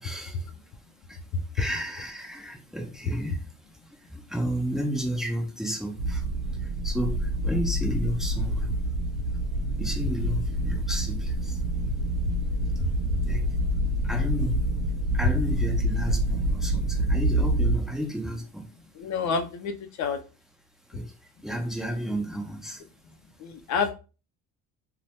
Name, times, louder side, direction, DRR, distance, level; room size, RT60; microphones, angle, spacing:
voice 1, 0.0-0.4 1.5-3.4 4.3-6.2 6.8-8.7 9.8-11.6 13.3-13.4 14.0-14.6 15.1-18.6 20.9-21.0 21.4-22.8, right 1 dB, ahead, 0.9 m, -32 dB
sound 1, 6.0-17.7, equal, 85° right, 0.7 m, -27 dB
voice 2, 19.0-19.7 20.0-20.2 23.4-23.9, left 5 dB, 60° left, 0.5 m, -28 dB
2.7 x 2.1 x 3.1 m
cardioid pair, 95°, 32 cm